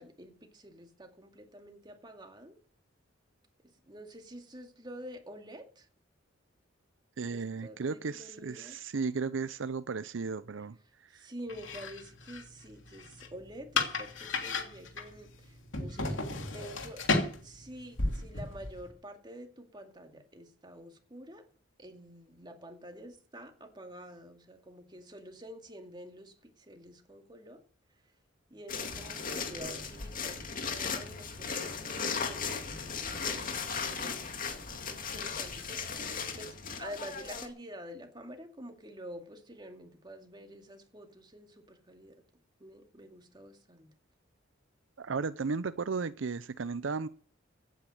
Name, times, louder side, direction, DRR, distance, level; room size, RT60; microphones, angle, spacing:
voice 1, 0.0-2.6 3.6-5.9 7.3-8.8 11.1-16.2 16.5-17.0 17.4-21.4 21.8-27.6 28.5-36.0 36.4-42.2 42.6-43.9, equal, 25° right, 2.3 m, -48 dB
voice 2, 7.2-10.8 11.1-11.3 45.0-47.1, right 4 dB, 75° right, 0.6 m, -35 dB
sound 1, 11.5-18.9, left 3 dB, 75° left, 2.9 m, -35 dB
sound 2, 28.7-37.5, left 5 dB, 45° left, 2.3 m, -37 dB
16.5 x 9.2 x 6.5 m
head